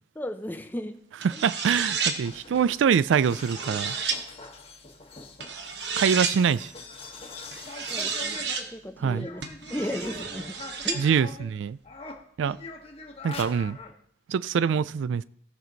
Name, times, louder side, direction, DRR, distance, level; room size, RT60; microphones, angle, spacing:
voice 1, 0.1-1.0 1.3-1.4 7.9-9.4 9.7-10.6 10.8-11.1, left 1 dB, 10° left, 7 dB, 0.6 m, -35 dB
sound 1, 1.2-2.2 3.1-4.2 5.4-6.4 7.5-8.7 9.4-11.0, right 5 dB, 60° right, 1.1 m, -31 dB
voice 2, 1.2-4.0 6.0-6.7 9.0-9.3 10.9-11.8 12.4-12.6 13.2-13.8 14.3-15.2, right 7 dB, 80° right, 18 dB, 0.3 m, -24 dB
sound 2, 2.2-11.5 11.8-13.9, left 3 dB, 30° left, 1.1 m, -43 dB
17.5 x 6.1 x 4.0 m, 0.63 s
head